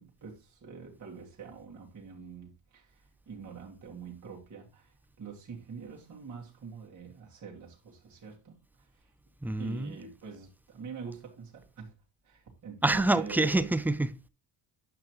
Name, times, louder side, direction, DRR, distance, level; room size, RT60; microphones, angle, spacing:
voice 1, 0.0-9.1 9.6-11.9 12.2-13.8, right 6 dB, 35° right, 2.4 m, -45 dB
voice 2, 9.4-10.0 12.8-14.3, right 2 dB, 5° right, 0.4 m, -27 dB
9.0 x 5.8 x 3.0 m
cardioid pair, 115°, 49 cm